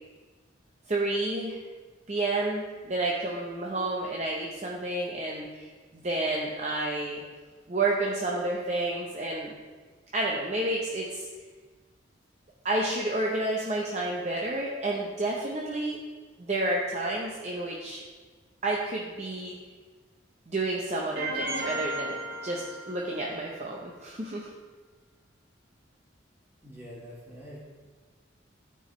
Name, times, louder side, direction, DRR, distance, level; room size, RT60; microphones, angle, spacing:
voice 1, 0.9-1.6 2.1-7.2 7.7-9.5 10.1-11.3 12.6-16.0 16.4-18.0 18.6-19.5 20.5-24.5, right 2 dB, 35° right, -3 dB, 0.7 m, -30 dB
sound 1, 21.2-23.3, right 2 dB, 60° right, 2.0 m, -34 dB
voice 2, 26.6-27.6, equal, 10° right, -7 dB, 2.1 m, -45 dB
12.5 x 4.6 x 3.1 m, 1.4 s
head